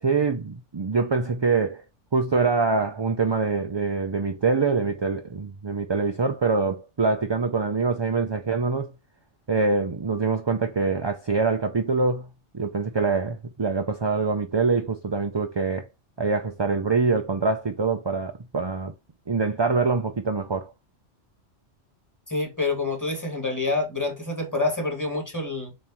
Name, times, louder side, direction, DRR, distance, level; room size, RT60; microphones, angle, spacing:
voice 1, 0.0-1.8 2.1-8.9 9.5-12.3 12.5-15.9 16.2-18.9 19.3-20.7, right 4 dB, 35° right, 0.4 m, -24 dB
voice 2, 22.3-25.7, left 3 dB, 15° left, 2.2 m, -27 dB
7.2 x 3.2 x 4.3 m
omnidirectional pair, 1.2 m